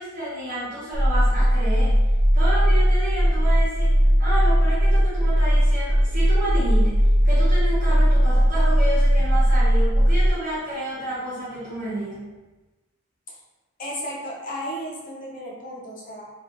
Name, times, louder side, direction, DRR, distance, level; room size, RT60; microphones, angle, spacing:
voice 1, 0.0-2.0 2.3-12.3, right 1 dB, 40° right, -12 dB, 1.0 m, -30 dB
sound 1, 0.9-10.3, equal, 85° right, 1.1 m, -18 dB
voice 2, 13.8-16.3, equal, 40° left, -3 dB, 0.7 m, -34 dB
3.7 x 3.0 x 2.5 m, 1.1 s
head